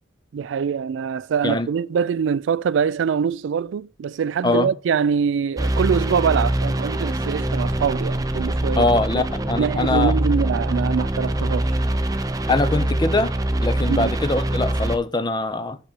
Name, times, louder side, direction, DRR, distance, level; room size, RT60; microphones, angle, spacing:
voice 1, 0.3-8.9 9.1-9.2 9.6-11.8 13.9-14.1, right 7 dB, 80° right, 0.3 m, -24 dB
sound 1, 5.6-15.0, right 1 dB, 20° right, 0.6 m, -23 dB
voice 2, 8.8-10.1 12.5-13.3 13.6-15.8, left 2 dB, 25° left, 0.7 m, -22 dB
6.7 x 5.7 x 7.3 m
head